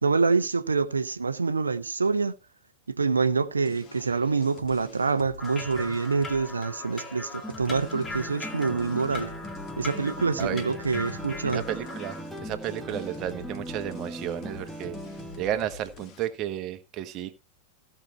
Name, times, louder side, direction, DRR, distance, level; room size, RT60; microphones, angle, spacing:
voice 1, 0.0-2.4 2.9-9.3 9.8-11.6, right 4 dB, 75° right, 0.9 m, -26 dB
sound 1, 3.6-16.3, left 5 dB, 35° left, 1.9 m, -47 dB
sound 2, 5.4-12.2, left 2 dB, 20° left, 2.5 m, -40 dB
sound 3, 7.4-15.4, equal, ahead, 1.5 m, -40 dB
voice 2, 11.4-15.0 15.4-17.3, right 11 dB, 35° right, 1.4 m, -32 dB
16.0 x 6.1 x 4.3 m
figure-of-eight pair, 90°, 0 cm